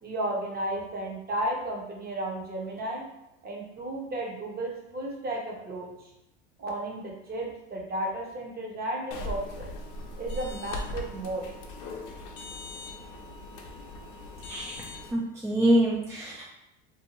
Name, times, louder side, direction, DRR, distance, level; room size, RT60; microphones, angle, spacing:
voice 1, 0.0-3.0 3.4-5.9 6.6-9.7 10.2-11.4, right 1 dB, 30° right, 0 dB, 0.8 m, -33 dB
sound 1, 9.1-15.1, left 2 dB, 60° left, 0.6 m, -39 dB
voice 2, 14.4-14.8 15.1-16.4, right 1 dB, 10° right, -5 dB, 0.3 m, -25 dB
2.6 x 2.2 x 2.9 m, 0.86 s
supercardioid pair, 100°, 34 cm